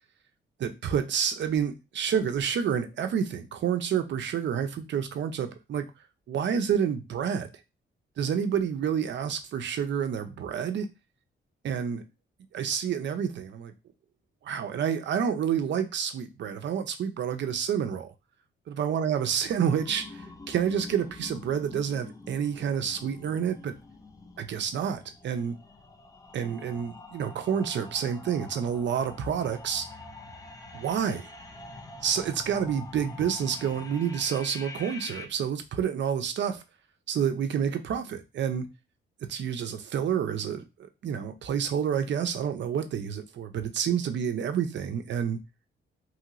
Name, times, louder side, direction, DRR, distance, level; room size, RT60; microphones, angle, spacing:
voice 1, 0.6-5.9 6.3-7.5 8.2-10.9 11.6-12.0 12.5-13.7 14.4-18.1 18.8-23.8 24.4-25.6 26.3-29.9 30.7-31.3 32.0-36.6 37.1-38.7 39.3-40.6 41.0-45.4, right 8 dB, 65° right, 0.5 m, -29 dB
sound 1, 19.6-35.3, left 3 dB, 15° left, 0.4 m, -45 dB
3.1 x 2.9 x 2.5 m
cardioid pair, 105°, 20 cm